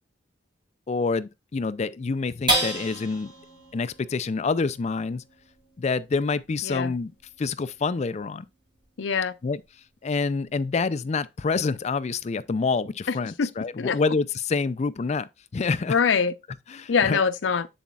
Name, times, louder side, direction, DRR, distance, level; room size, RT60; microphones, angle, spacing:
voice 1, 0.9-3.3 3.7-5.2 5.8-7.1 7.4-8.5 9.4-9.6 10.0-16.0 16.7-17.2, left 4 dB, 35° left, 0.4 m, -27 dB
sound 1, 2.5-9.2 9.6-9.7 10.1-10.6, right 1 dB, 25° right, 4.8 m, -33 dB
voice 2, 6.6-6.9 9.0-9.3 13.1-13.5 13.8-14.0 15.9-16.3 16.9-17.7, left 6 dB, 90° left, 0.6 m, -23 dB
7.2 x 7.1 x 2.3 m
head